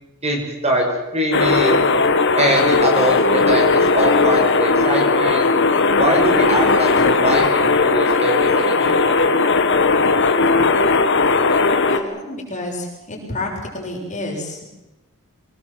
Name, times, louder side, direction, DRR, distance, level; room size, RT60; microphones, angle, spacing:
voice 1, 0.2-0.9 1.1-1.9 2.4-5.5 6.0-9.2, right 1 dB, 30° right, 2 dB, 5.5 m, -22 dB
sound 1, 1.3-12.0, left 3 dB, 55° left, 1.9 m, -17 dB
voice 2, 11.8-14.6, left 2 dB, 35° left, -1 dB, 7.1 m, -30 dB
25.5 x 19.5 x 7.8 m, 1.0 s
head